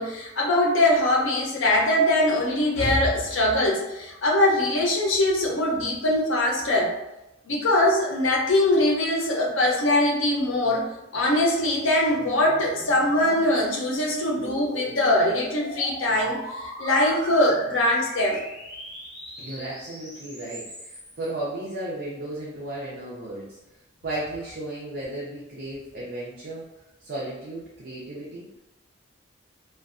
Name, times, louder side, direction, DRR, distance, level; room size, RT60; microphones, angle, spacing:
voice 1, 0.0-6.9 7.5-10.8 11.1-18.4, left 1 dB, 80° left, -2 dB, 0.6 m, -22 dB
sound 1, 11.6-21.3, equal, 5° right, 1.0 m, -40 dB
voice 2, 19.4-23.6 24.0-26.6 27.0-28.4, right 1 dB, 50° right, -6 dB, 0.5 m, -34 dB
2.6 x 2.1 x 2.4 m, 0.93 s
head